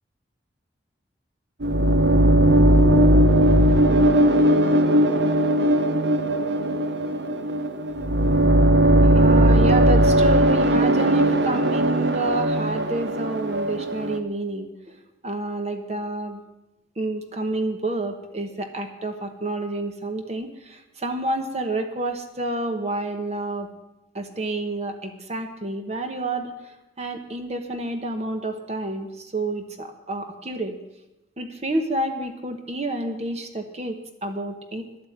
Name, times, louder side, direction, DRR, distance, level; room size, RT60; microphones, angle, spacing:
sound 1, 1.6-14.2, right 1 dB, 70° right, 0.9 m, -18 dB
voice 1, 9.0-15.0 15.2-16.4 17.0-23.7 24.1-30.8 31.4-34.8, right 2 dB, 35° right, 6 dB, 1.1 m, -29 dB
11.5 x 8.0 x 9.3 m, 0.96 s
head